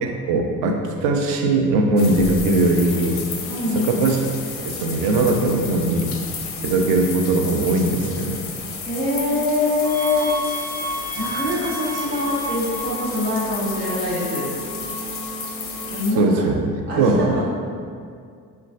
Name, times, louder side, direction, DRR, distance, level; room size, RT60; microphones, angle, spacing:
voice 1, 0.0-3.2 3.7-4.2 4.6-6.1 6.6-8.4 16.2-17.3, right 2 dB, 60° right, 2 dB, 0.5 m, -20 dB
sound 1, 2.0-16.1, left 5 dB, 30° left, 0.4 m, -32 dB
voice 2, 3.5-4.0 8.8-10.3 11.1-14.5 15.9-16.5 16.9-17.6, left 2 dB, 80° right, -7 dB, 0.9 m, -24 dB
sound 2, 9.8-16.2, equal, 20° right, 0.8 m, -32 dB
3.8 x 2.2 x 2.5 m, 2.2 s
figure-of-eight pair, 50°, 48 cm